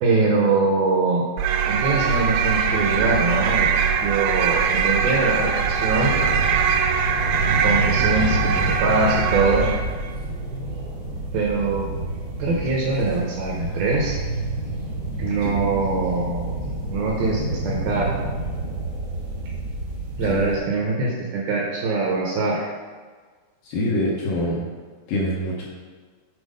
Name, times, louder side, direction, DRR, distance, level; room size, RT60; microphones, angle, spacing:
voice 1, 0.0-1.3 1.6-3.7 4.0-6.1 7.6-9.7 11.3-11.9 12.4-14.2 15.2-18.1 20.2-22.7, right 3 dB, 75° right, -2 dB, 2.4 m, -23 dB
sound 1, 1.4-10.0, right 7 dB, 90° right, 2.9 m, -22 dB
sound 2, 1.7-20.6, right 2 dB, 50° right, 1.2 m, -29 dB
voice 2, 23.7-24.6 25.1-25.7, left 1 dB, 70° left, -4 dB, 2.3 m, -24 dB
8.2 x 4.5 x 5.1 m, 1.5 s
omnidirectional pair, 4.9 m